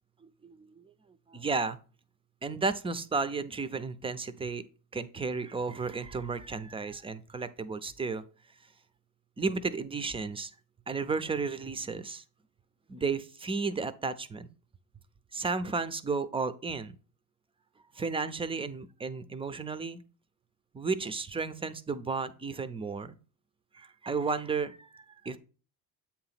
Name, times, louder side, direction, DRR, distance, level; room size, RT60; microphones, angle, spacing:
voice 1, 0.4-0.8 1.3-1.8 2.4-4.6 4.9-8.2 9.4-10.5 10.9-12.2 12.9-14.5 15.3-17.0 17.9-20.0 20.7-23.2 23.7-25.4, right 4 dB, 15° right, 13 dB, 0.4 m, -33 dB
8.3 x 2.9 x 5.7 m, 0.37 s
cardioid pair, 130°, 40 cm